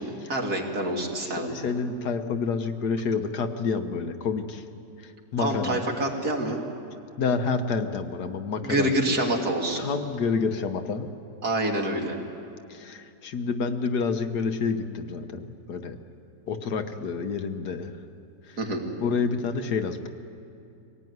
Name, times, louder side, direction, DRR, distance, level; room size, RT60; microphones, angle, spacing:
voice 1, 0.0-1.5 5.4-6.6 8.6-9.9 11.4-12.1 18.6-18.9, right 1 dB, 70° right, 1 dB, 3.1 m, -27 dB
voice 2, 1.2-4.6 5.0-5.8 7.2-8.9 9.8-11.1 12.7-16.0 16.5-17.9 18.5-18.6 19.0-20.1, left 5 dB, 90° left, 7 dB, 1.8 m, -28 dB
24.5 x 18.0 x 9.5 m, 2.6 s
omnidirectional pair, 1.7 m